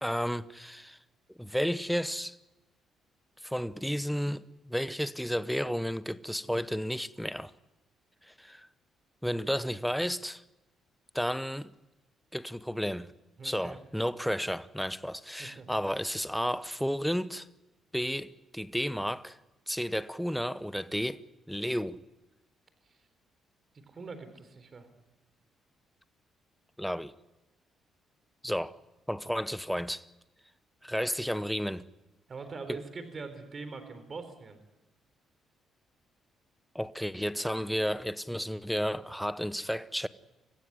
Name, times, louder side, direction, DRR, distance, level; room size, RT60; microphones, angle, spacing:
voice 1, 0.0-1.0 1.4-2.4 3.4-7.5 8.3-8.7 9.2-10.4 11.1-11.7 12.3-13.1 13.4-17.5 17.9-19.4 19.7-21.2 21.5-22.0 26.8-27.1 28.4-28.8 29.1-30.0 30.8-31.9 36.7-40.1, equal, ahead, 0.9 m, -32 dB
voice 2, 13.4-13.8 15.4-15.7 22.9-23.0 23.9-24.9 32.3-34.6, right 4 dB, 40° right, 4.0 m, -43 dB
25.0 x 15.5 x 9.6 m
cardioid pair, 90°, 0 cm